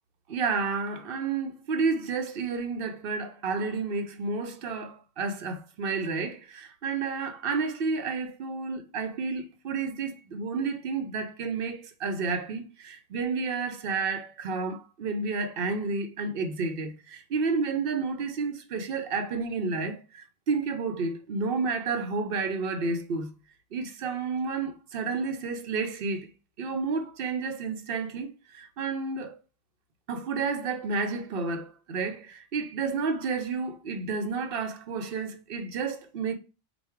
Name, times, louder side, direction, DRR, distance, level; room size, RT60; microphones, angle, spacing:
voice 1, 0.3-23.3 23.7-26.3 26.6-29.3 30.1-36.3, right 4 dB, 65° right, 0.8 m, -31 dB
4.4 x 2.3 x 3.5 m
omnidirectional pair, 1.0 m